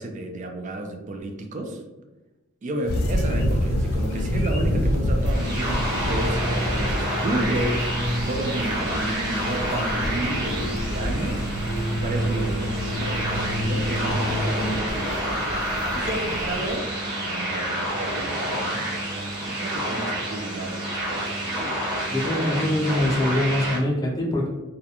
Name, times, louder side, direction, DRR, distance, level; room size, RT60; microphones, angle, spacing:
voice 1, 0.0-1.8 2.6-11.5 11.9-15.7 15.9-21.0 21.3-21.7, right 2 dB, 35° right, 3 dB, 0.4 m, -32 dB
sound 1, 2.9-16.8, equal, 85° left, 0.5 m, -27 dB
sound 2, 5.2-23.8, right 1 dB, 20° right, 0.7 m, -29 dB
voice 2, 22.1-24.5, left 1 dB, 15° left, -2 dB, 0.5 m, -23 dB
2.4 x 2.1 x 2.8 m, 1.1 s
head